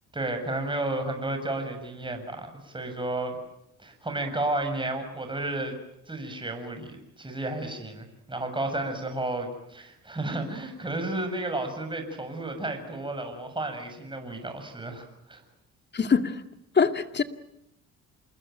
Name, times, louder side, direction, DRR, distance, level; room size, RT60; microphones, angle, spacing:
voice 1, 0.1-3.4 3.8-5.8 6.1-15.4, right 2 dB, 15° right, 5 dB, 7.0 m, -32 dB
voice 2, 15.9-16.4 16.8-17.2, left 5 dB, 35° left, 8 dB, 2.1 m, -23 dB
28.0 x 21.0 x 9.1 m, 0.81 s
cardioid pair, 90°, 30 cm